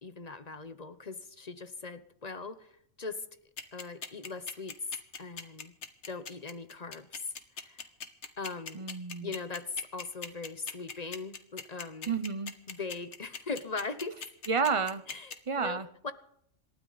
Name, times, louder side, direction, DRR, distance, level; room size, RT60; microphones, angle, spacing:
voice 1, 0.0-2.7 3.0-3.2 3.7-4.7 5.2-5.8 6.1-7.8 8.4-8.8 9.2-12.1 12.7-14.2 15.1-16.1, left 4 dB, 35° left, 11 dB, 0.9 m, -40 dB
sound 1, 3.6-15.3, left 5 dB, 65° left, 1.6 m, -40 dB
voice 2, 8.7-9.3 12.1-12.5 14.5-15.0 15.5-15.9, right 5 dB, 30° right, 13 dB, 0.7 m, -30 dB
27.5 x 12.5 x 4.1 m, 0.69 s
omnidirectional pair, 1.3 m